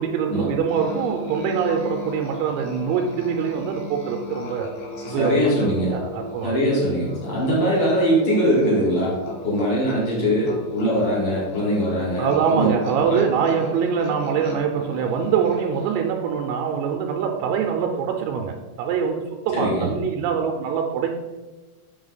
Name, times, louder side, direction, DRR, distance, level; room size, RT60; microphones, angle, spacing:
voice 1, 0.0-4.8 5.1-5.5 5.9-6.6 12.2-21.1, right 7 dB, 85° right, 3 dB, 3.3 m, -24 dB
Musical instrument, 0.7-16.2, left 3 dB, 65° left, 2.1 m, -36 dB
voice 2, 5.1-5.9 6.4-9.1 9.4-12.7 13.1-13.2 19.5-19.9, equal, 35° left, -5 dB, 2.9 m, -21 dB
6.9 x 6.5 x 3.9 m, 1.2 s
omnidirectional pair, 5.9 m